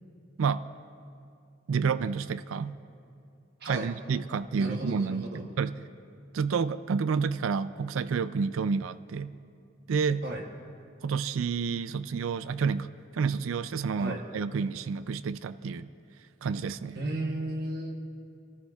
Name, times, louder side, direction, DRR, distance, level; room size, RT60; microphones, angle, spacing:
voice 1, 1.7-2.7 3.6-5.8 6.3-9.3 9.9-10.2 11.0-12.9 13.1-15.9 16.4-17.0, right 5 dB, 85° right, 13 dB, 0.4 m, -29 dB
voice 2, 4.5-5.5 10.2-10.4 14.0-14.2 16.9-18.0, right 1 dB, 55° right, -1 dB, 1.0 m, -34 dB
28.0 x 14.0 x 2.4 m, 2.4 s
head